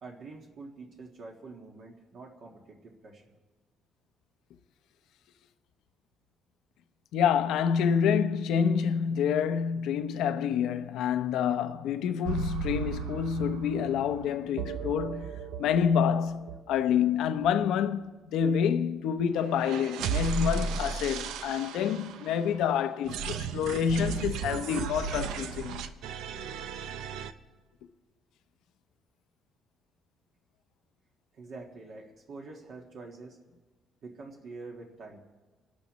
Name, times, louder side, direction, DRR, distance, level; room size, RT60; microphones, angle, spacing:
voice 1, 0.0-3.2 31.3-33.4 34.0-35.2, right 3 dB, 50° right, 1.6 m, -46 dB
voice 2, 7.1-15.3 15.6-25.8, left 7 dB, 80° left, 0.8 m, -27 dB
sound 1, 12.3-17.0 17.4-17.6 17.9-18.0 18.4-18.5 19.4-22.6 23.0-27.3, right 6 dB, 85° right, 0.7 m, -35 dB
27.5 x 12.5 x 3.1 m
cardioid pair, 150°, 0 cm